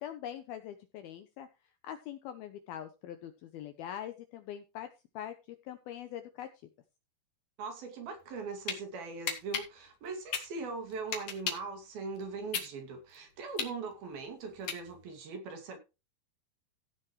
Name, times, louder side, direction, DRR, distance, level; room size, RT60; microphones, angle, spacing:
voice 1, 0.0-1.5 1.8-4.9 5.2-6.5, left 10 dB, 80° left, 2.3 m, -43 dB
voice 2, 7.6-15.8, right 4 dB, 55° right, 3.9 m, -40 dB
sound 1, 8.2-8.8 9.3-11.7 12.2-15.2, left 7 dB, 50° left, 2.9 m, -36 dB
16.0 x 7.6 x 3.2 m
omnidirectional pair, 5.3 m